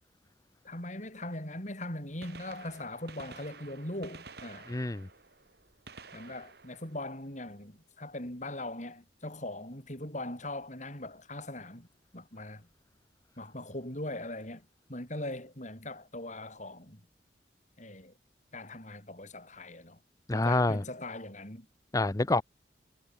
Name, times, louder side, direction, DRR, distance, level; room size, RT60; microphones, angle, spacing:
voice 1, 0.6-4.7 6.1-11.9 12.1-12.7 13.4-17.0 17.8-18.1 18.5-20.0 20.3-21.7, left 1 dB, 40° left, 7.6 m, -40 dB
Gunshot gunfire, 2.2-7.9 9.9-10.0 11.0-11.1 12.7-12.8 14.2-14.3 14.5-14.6, right 4 dB, 60° right, 3.5 m, -52 dB
voice 2, 4.7-5.1 20.3-20.8 21.9-22.4, left 2 dB, 20° left, 0.5 m, -27 dB
head